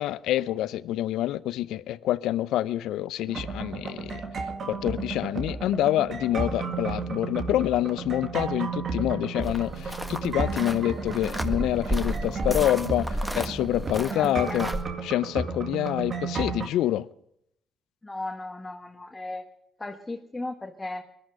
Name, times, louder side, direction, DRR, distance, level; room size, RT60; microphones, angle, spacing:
voice 1, 0.0-4.2 4.7-14.7 15.0-17.1, left 13 dB, 75° left, 0.5 m, -27 dB
sound 1, 3.3-16.7, right 4 dB, 55° right, 1.9 m, -33 dB
sound 2, 9.4-14.8, right 1 dB, 5° right, 1.7 m, -33 dB
voice 2, 14.1-14.7 18.0-19.4 19.8-21.0, left 2 dB, 20° left, 1.5 m, -36 dB
20.5 x 12.0 x 5.3 m
hypercardioid pair, 50°, 0 cm